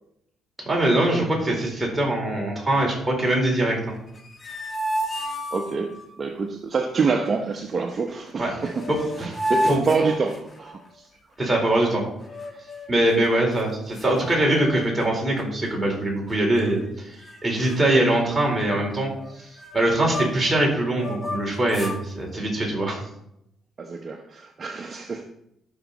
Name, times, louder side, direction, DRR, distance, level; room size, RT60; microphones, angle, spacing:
voice 1, 0.6-3.9 8.4-8.5 8.9-9.0 9.7-9.8 11.4-12.0 12.9-19.1 19.3-23.0, right 1 dB, 15° right, -2 dB, 4.2 m, -22 dB
sound 1, 4.1-6.1 8.3-8.4 8.6-10.9 12.2-13.0 13.6-13.7 14.0-15.1 15.4-15.7 16.3-16.9 17.2-17.4 17.7-20.5 20.9-22.0, equal, 30° left, 1.6 m, -32 dB
voice 2, 5.5-11.1 23.8-25.2, right 4 dB, 40° right, 4 dB, 0.9 m, -27 dB
14.0 x 6.1 x 4.2 m, 0.80 s
cardioid pair, 90°, 0 cm